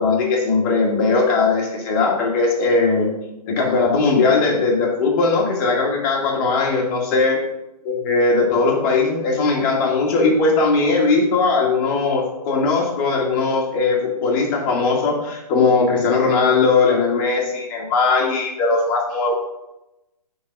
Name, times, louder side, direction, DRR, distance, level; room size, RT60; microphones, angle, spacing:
voice 1, 0.0-3.1 3.5-7.4 7.9-19.3, left 3 dB, 30° left, -2 dB, 1.7 m, -19 dB
6.0 x 3.7 x 5.2 m, 0.94 s
hypercardioid pair, 140°, 21 cm